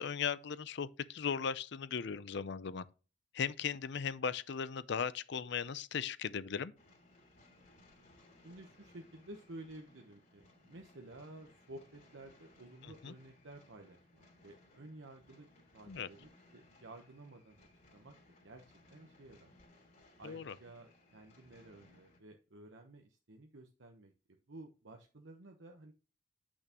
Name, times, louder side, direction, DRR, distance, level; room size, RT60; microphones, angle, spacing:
voice 1, 0.0-2.8 3.3-6.7 13.0-13.1 15.9-16.1 20.2-20.5, left 7 dB, 65° left, 0.5 m, -37 dB
sound 1, 6.8-22.2, left 2 dB, 40° left, 3.0 m, -64 dB
voice 2, 8.4-15.5 15.7-18.1 18.4-19.5 20.2-24.1 24.5-25.9, right 2 dB, 75° right, 1.0 m, -53 dB
8.3 x 6.2 x 3.0 m
head